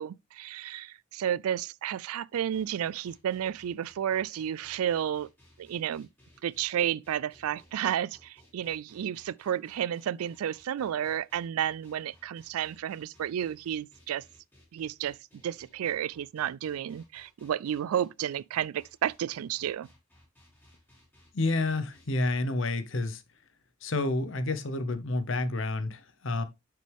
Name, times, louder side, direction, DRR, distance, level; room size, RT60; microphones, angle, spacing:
voice 1, 0.0-5.3 5.6-6.1 6.4-14.2 14.7-15.2 15.4-19.9, right 10 dB, 90° right, 0.3 m, -32 dB
sound 1, 2.3-22.3, left 1 dB, 10° left, 2.8 m, -61 dB
voice 2, 21.3-23.2 23.8-26.4, left 2 dB, 65° left, 0.9 m, -29 dB
6.8 x 6.2 x 3.4 m
head